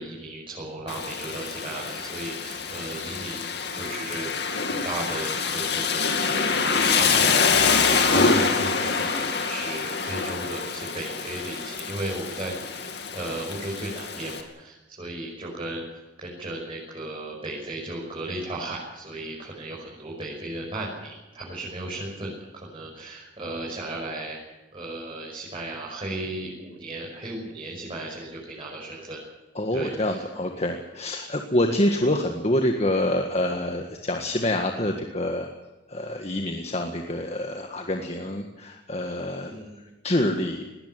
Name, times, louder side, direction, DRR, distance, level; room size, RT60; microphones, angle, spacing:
voice 1, 0.0-4.4 4.7-15.8 16.2-22.3 22.6-24.4 24.7-29.2 29.7-30.2 39.5-39.9, right 1 dB, 30° right, -5 dB, 6.2 m, -35 dB
Rain, 0.9-14.4, left 5 dB, 65° left, 2.6 m, -26 dB
voice 2, 29.5-35.5 35.9-39.6 40.0-40.6, left 1 dB, 35° left, 4 dB, 1.7 m, -26 dB
20.0 x 18.0 x 9.4 m, 1.1 s
head